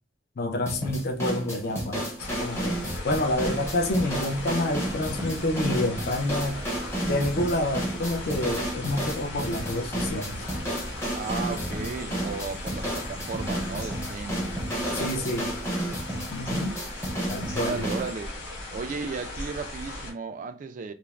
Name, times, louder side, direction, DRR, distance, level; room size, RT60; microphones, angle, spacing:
voice 1, 0.4-2.8 3.0-6.6 7.0-10.5 14.9-15.5 16.3-16.8 17.3-17.9, left 1 dB, 55° left, 0.5 m, -28 dB
sound 1, 0.7-18.1, right 1 dB, 15° left, 0.7 m, -32 dB
sound 2, 2.2-20.1, left 1 dB, 90° left, 1.0 m, -38 dB
Fixed-wing aircraft airplane, 3.0-15.0, right 1 dB, 90° right, 0.6 m, -44 dB
voice 2, 11.1-14.5 14.9-15.8 17.5-18.3 18.7-20.9, right 4 dB, 45° right, 0.3 m, -35 dB
2.4 x 2.0 x 3.1 m
head